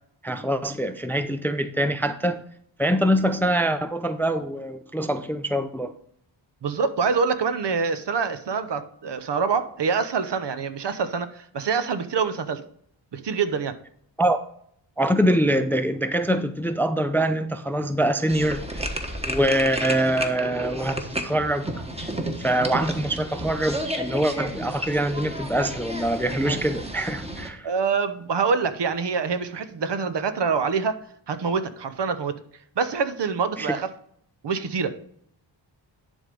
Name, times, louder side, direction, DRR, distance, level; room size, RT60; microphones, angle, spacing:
voice 1, 0.2-2.4 2.8-5.9 14.2-14.4 15.0-18.8 19.3-21.7 22.0-22.1 22.4-27.7 33.6-33.7, right 1 dB, 5° left, 0.5 m, -24 dB
voice 2, 6.6-12.6 13.1-13.7 27.6-32.4 32.8-33.9 34.4-35.0, right 5 dB, 65° right, 0.9 m, -25 dB
sound 1, 18.3-27.5, right 1 dB, 15° right, 1.3 m, -32 dB
10.5 x 3.6 x 5.2 m
wide cardioid pair, 80°, 46 cm